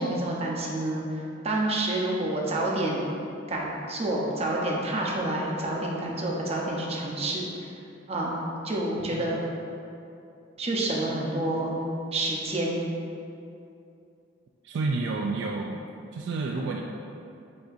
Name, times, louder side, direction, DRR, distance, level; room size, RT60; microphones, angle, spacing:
voice 1, 0.0-3.1 3.5-7.5 8.1-8.3 8.6-9.4 10.6-11.8 12.1-12.8, right 1 dB, 35° right, -3 dB, 0.6 m, -28 dB
voice 2, 14.6-15.9 16.1-16.8, right 3 dB, 65° right, 0 dB, 0.3 m, -30 dB
7.8 x 2.7 x 2.5 m, 2.6 s
head